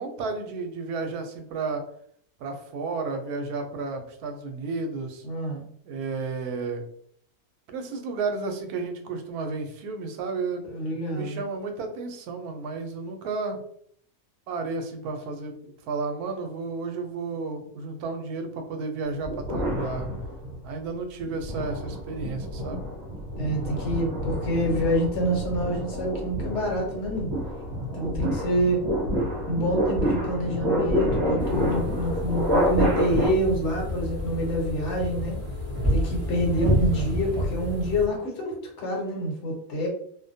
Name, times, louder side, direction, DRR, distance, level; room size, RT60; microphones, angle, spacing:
voice 1, 0.0-1.8 2.4-5.3 5.8-6.8 7.7-10.7 11.1-13.6 14.5-20.1 20.6-22.9 36.6-37.1, right 4 dB, 80° right, 5 dB, 1.0 m, -32 dB
voice 2, 5.2-5.6 10.6-11.4 23.4-27.3 27.9-28.8 29.5-35.4 35.9-39.9, equal, 55° left, 0 dB, 1.1 m, -27 dB
sound 1, 19.2-20.7 21.2-33.3, equal, 55° right, 0.8 m, -28 dB
sound 2, 31.4-38.1, equal, 15° left, 0.7 m, -29 dB
2.6 x 2.1 x 2.6 m, 0.64 s
omnidirectional pair, 1.6 m